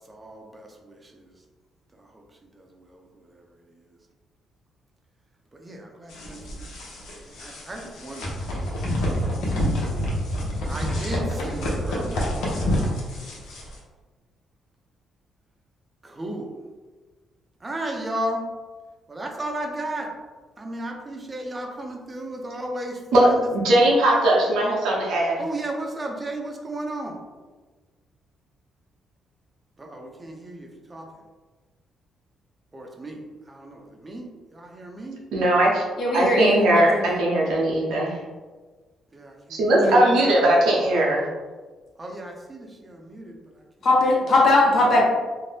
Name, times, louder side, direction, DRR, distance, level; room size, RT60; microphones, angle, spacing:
voice 1, 0.1-1.3 2.0-2.2 2.5-3.4 5.5-6.7 7.1-8.3 8.7-8.9 9.3-12.5 13.2-13.3 16.0-16.5 17.6-18.4 19.1-20.1 20.6-23.5 25.4-27.2 29.8-31.1 32.7-35.2 39.1-39.6 42.0-43.4, right 1 dB, 25° right, 1 dB, 0.5 m, -35 dB
sound 1, 6.1-13.8, equal, 85° left, 0.7 m, -27 dB
voice 2, 23.1-25.4 35.3-35.8 36.1-38.2 39.5-41.2, right 1 dB, 85° right, -3 dB, 0.8 m, -19 dB
voice 3, 36.0-37.2 39.8-40.1 43.8-45.1, left 2 dB, 60° left, -3 dB, 0.9 m, -20 dB
2.6 x 2.1 x 3.2 m, 1.3 s
cardioid pair, 90°, 0 cm